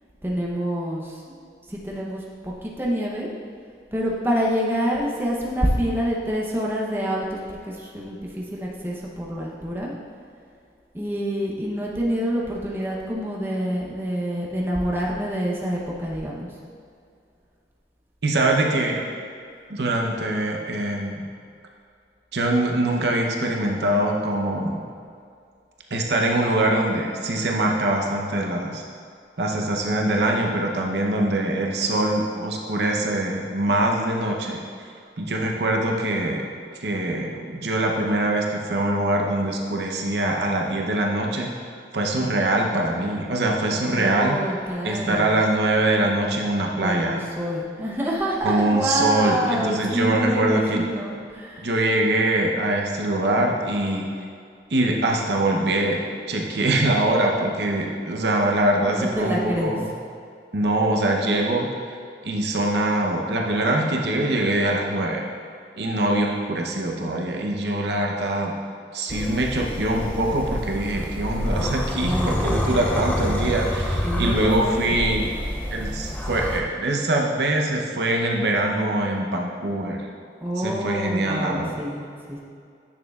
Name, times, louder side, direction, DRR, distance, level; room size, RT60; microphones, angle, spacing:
voice 1, 0.2-1.2 1.7-3.3 3.9-9.9 10.9-16.5 43.7-45.5 46.8-51.7 58.8-59.8 72.0-72.4 74.0-75.0 80.4-82.4, equal, 15° right, -3 dB, 0.8 m, -27 dB
voice 2, 18.2-19.0 19.7-21.2 22.3-24.8 25.9-28.8 29.4-34.6 35.2-36.4 36.8-41.5 41.9-44.4 44.8-47.2 48.4-50.8 51.6-54.1 54.7-56.0 56.3-59.9 60.5-61.7 62.2-65.2 65.7-68.6 68.9-75.3 75.7-80.0 80.6-81.7, right 1 dB, 75° right, 0 dB, 0.8 m, -23 dB
sound 1, 69.1-76.6, left 1 dB, 10° left, 0.4 m, -27 dB
9.9 x 6.4 x 2.4 m, 2.3 s
head